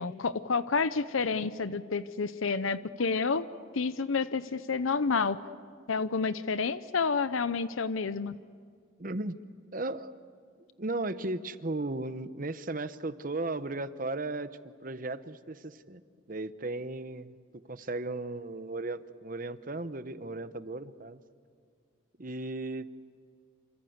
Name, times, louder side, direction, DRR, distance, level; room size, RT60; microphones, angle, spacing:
voice 1, 0.0-5.4 5.9-8.4, left 4 dB, 85° left, 14 dB, 0.7 m, -29 dB
voice 2, 9.0-9.4 9.7-10.1 10.8-14.5 14.8-16.0 16.3-17.4 17.7-21.2 22.2-22.9, right 2 dB, 40° right, 12 dB, 0.9 m, -35 dB
28.0 x 25.5 x 8.0 m, 2.1 s
head